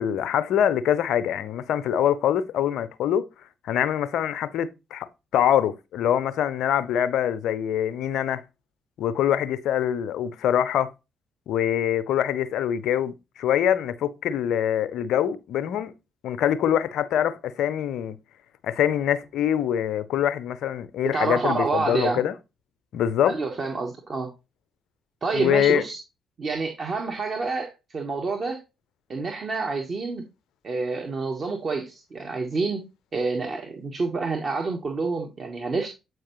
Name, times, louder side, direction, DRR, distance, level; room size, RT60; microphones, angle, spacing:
voice 1, 0.0-3.2 3.6-8.4 9.0-10.9 11.5-15.9 16.2-18.2 18.6-22.3 22.9-23.4 25.3-25.8, left 10 dB, 65° left, 0.5 m, -24 dB
voice 2, 21.1-22.2 23.2-24.3 25.2-26.0 26.4-28.6 29.1-30.2 30.6-32.8 33.1-35.9, right 3 dB, 45° right, 1.0 m, -28 dB
7.9 x 4.6 x 3.0 m
figure-of-eight pair, 40°, 0 cm